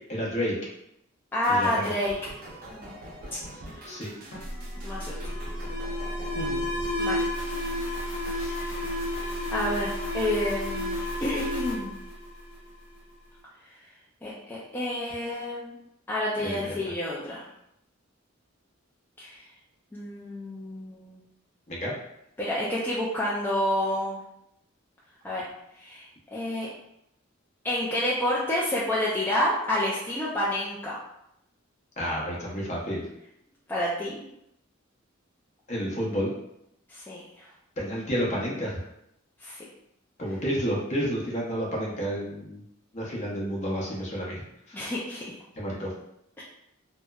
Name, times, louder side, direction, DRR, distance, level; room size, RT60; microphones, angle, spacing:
voice 1, 0.1-0.5 1.5-1.8 3.9-4.1 6.3-6.6 8.3-8.6 16.4-16.8 21.7-21.9 32.0-33.0 35.7-36.3 37.8-38.8 40.2-42.6 42.9-44.4 44.7-44.8 45.6-45.9, equal, 35° left, -4 dB, 0.7 m, -30 dB
voice 2, 1.3-2.2 2.7-3.0 3.7-3.8 4.8-5.2 7.0-7.3 8.4-8.8 9.5-12.0 13.6-13.8 14.2-15.7 16.1-17.4 19.2-19.4 19.9-21.2 22.4-24.2 25.2-25.5 25.7-26.7 27.6-31.0 33.7-34.2 36.9-37.5 39.4-39.6 44.7-45.2 46.4-46.5, left 1 dB, 10° left, -7 dB, 0.3 m, -29 dB
sound 1, 1.4-7.8, right 1 dB, 45° right, 0.5 m, -44 dB
Alarm, 4.3-12.9, left 1 dB, 80° left, 0.9 m, -31 dB
2.8 x 2.0 x 2.2 m, 0.79 s
head